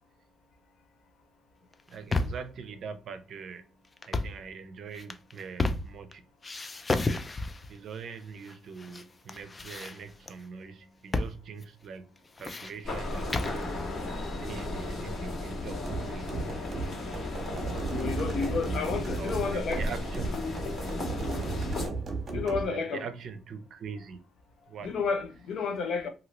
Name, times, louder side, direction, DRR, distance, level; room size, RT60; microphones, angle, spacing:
sound 1, 1.7-2.5 4.0-4.4 4.9-6.1 6.4-7.7 8.4-9.0 9.3-10.3 11.1-11.4 11.6-11.7 12.2-13.6, left 2 dB, 25° left, 0.4 m, -32 dB
voice 1, 1.9-3.6 4.0-6.2 7.7-12.0 12.4-16.3 19.2-20.4 22.4-24.2 24.7-24.9, right 6 dB, 65° right, 0.5 m, -42 dB
sound 2, 12.8-21.9, left 2 dB, 50° left, 1.6 m, -35 dB
sound 3, 15.8-22.7, right 3 dB, 40° right, 1.0 m, -35 dB
voice 2, 17.9-19.8 22.3-23.1 24.8-26.1, left 5 dB, 70° left, 0.7 m, -31 dB
2.8 x 2.7 x 2.9 m
cardioid pair, 90°, 0 cm